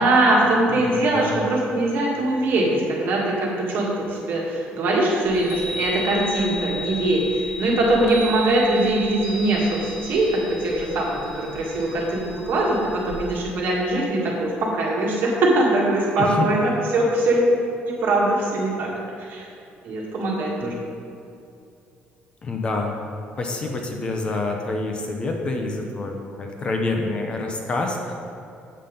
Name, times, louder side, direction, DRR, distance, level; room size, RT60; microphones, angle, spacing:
voice 1, 0.0-12.8 13.0-17.6 17.8-18.9 19.2-19.5 19.8-20.8, right 1 dB, 55° right, -3 dB, 1.7 m, -22 dB
voice 2, 0.7-1.4 16.2-16.5 20.6-20.8 22.4-23.0 23.4-28.1, left 3 dB, 25° left, 2 dB, 0.7 m, -27 dB
Chime, 5.3-13.4, equal, 85° left, 1.8 m, -34 dB
7.6 x 5.4 x 5.1 m, 2.6 s
cardioid pair, 165°, 4 cm